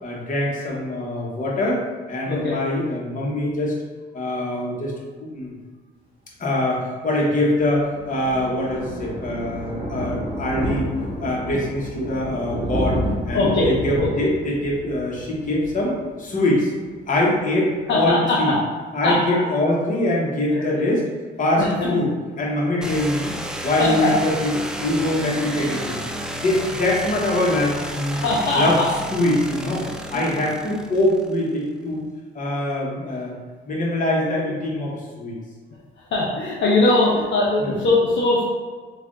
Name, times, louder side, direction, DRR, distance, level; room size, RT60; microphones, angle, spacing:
voice 1, 0.0-1.8 2.1-3.7 4.1-4.9 5.2-5.5 6.4-10.9 11.2-13.0 13.3-15.9 16.2-16.7 17.1-18.5 18.9-21.0 21.4-22.1 22.4-23.3 23.6-26.0 26.4-28.2 28.5-28.8 29.1-29.9 30.1-32.1 32.3-33.4 33.6-35.4, left 1 dB, 40° left, -4 dB, 1.1 m, -23 dB
voice 2, 2.2-2.6 6.7-6.8 8.3-8.5 13.3-13.7 14.0-14.1 17.9-18.6 19.0-19.4 20.5-20.8 21.6-21.9 23.8-24.2 28.1-28.9 30.1-30.3 31.9-32.0 36.1-38.4, left 2 dB, 65° left, -4 dB, 0.7 m, -21 dB
Thunder, 7.3-16.6 16.9-17.2 17.5-17.6 17.8-17.9, equal, 25° right, 1.1 m, -30 dB
sound 1, 22.8-31.5, equal, 5° right, 0.3 m, -32 dB
3.3 x 2.4 x 3.8 m, 1.5 s
cardioid pair, 90°, 20 cm